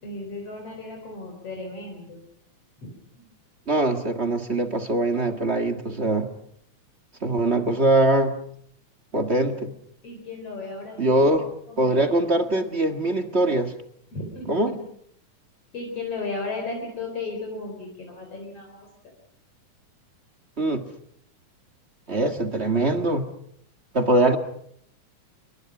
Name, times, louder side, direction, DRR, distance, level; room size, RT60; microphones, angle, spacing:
voice 1, 0.0-2.2 10.0-11.3 11.7-12.1 14.1-14.8 15.7-18.9, left 3 dB, 50° left, 1 dB, 5.1 m, -35 dB
voice 2, 3.7-6.3 7.2-8.3 9.1-9.7 11.0-11.5 11.8-13.7 14.5-14.8 20.6-20.8 22.1-23.3 23.9-24.4, right 2 dB, 30° right, 7 dB, 1.5 m, -22 dB
27.5 x 23.0 x 6.1 m, 0.66 s
omnidirectional pair, 3.5 m